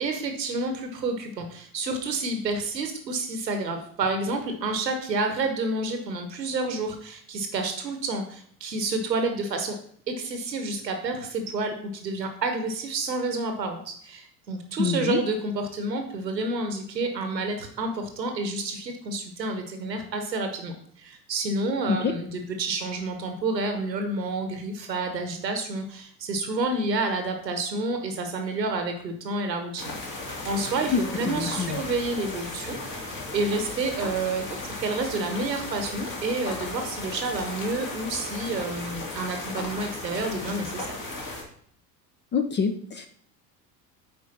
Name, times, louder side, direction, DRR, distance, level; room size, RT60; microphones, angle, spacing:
voice 1, 0.0-9.8 10.1-32.8 33.0-41.0, right 3 dB, 80° right, 6 dB, 1.1 m, -29 dB
voice 2, 14.8-15.2 21.9-22.1 30.9-31.0 31.3-31.8 42.3-43.1, left 5 dB, 20° left, 7 dB, 0.6 m, -25 dB
sound 1, 29.8-41.4, left 2 dB, 40° left, 2.6 m, -36 dB
8.9 x 5.0 x 4.2 m, 0.62 s
figure-of-eight pair, 70°, 49 cm